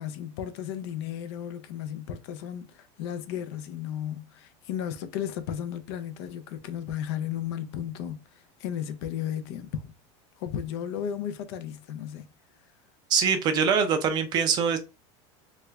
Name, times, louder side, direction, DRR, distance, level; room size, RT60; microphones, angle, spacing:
voice 1, 0.0-8.2 8.6-9.9 10.4-12.3, left 9 dB, 60° left, 0.5 m, -34 dB
voice 2, 13.1-14.8, right 6 dB, 25° right, 0.4 m, -23 dB
3.1 x 2.4 x 3.3 m
supercardioid pair, 165°, 15 cm